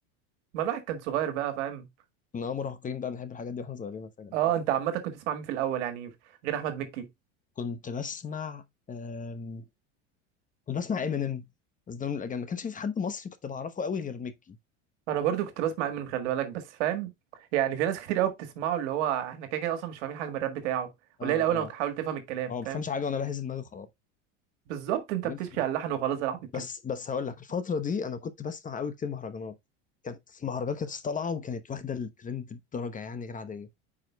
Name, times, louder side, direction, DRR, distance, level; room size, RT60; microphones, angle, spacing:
voice 1, 0.5-1.9 4.3-6.1 6.4-7.1 15.1-17.1 17.5-20.9 21.2-22.8 24.7-26.4, right 11 dB, 80° right, 1.7 m, -29 dB
voice 2, 2.3-4.5 7.6-9.7 10.7-11.5 11.9-14.6 21.2-21.7 22.5-23.9 25.2-25.4 26.5-29.5 30.0-33.7, left 6 dB, 25° left, 0.9 m, -34 dB
8.9 x 5.0 x 2.2 m
supercardioid pair, 110°, 35 cm